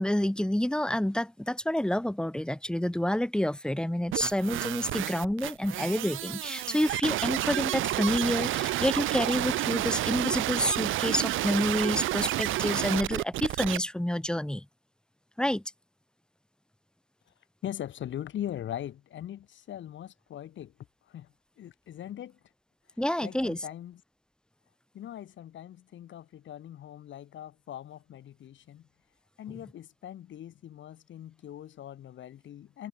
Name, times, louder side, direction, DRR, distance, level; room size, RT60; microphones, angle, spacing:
voice 1, 0.0-14.7 15.4-15.6 23.0-23.6, left 1 dB, 5° left, 2.2 m, -28 dB
sound 1, 4.1-13.8, right 15 dB, 90° right, 2.3 m, -30 dB
voice 2, 17.6-20.7 21.1-22.4 23.2-24.0 24.9-28.9 29.4-32.9, left 11 dB, 70° left, 5.1 m, -41 dB
cardioid pair, 90°, 20 cm